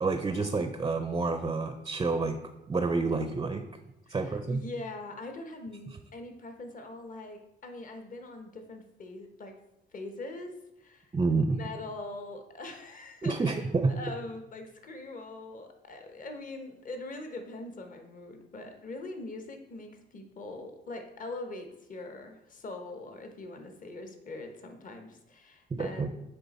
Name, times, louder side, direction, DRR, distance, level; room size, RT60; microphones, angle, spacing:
voice 1, 0.0-2.4 2.7-3.6 4.1-4.6 11.1-11.6 13.2-13.9 25.7-26.1, right 3 dB, 20° right, 7 dB, 0.5 m, -28 dB
voice 2, 4.1-9.5 9.9-10.5 10.8-26.1, left 2 dB, 40° left, 5 dB, 1.1 m, -42 dB
9.2 x 3.5 x 4.1 m, 0.88 s
cardioid pair, 90°, 20 cm